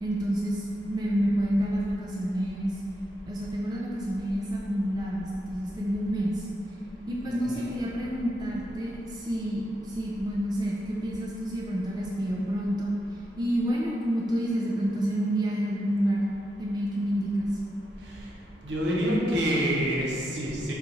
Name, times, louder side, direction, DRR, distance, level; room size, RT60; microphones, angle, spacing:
voice 1, 0.0-2.8 3.3-6.5 7.1-12.9 13.4-16.2 16.6-17.5, equal, 25° right, -4 dB, 0.3 m, -28 dB
voice 2, 7.3-7.7 18.6-20.7, equal, 70° right, -4 dB, 0.8 m, -27 dB
4.4 x 2.4 x 3.9 m, 2.7 s
head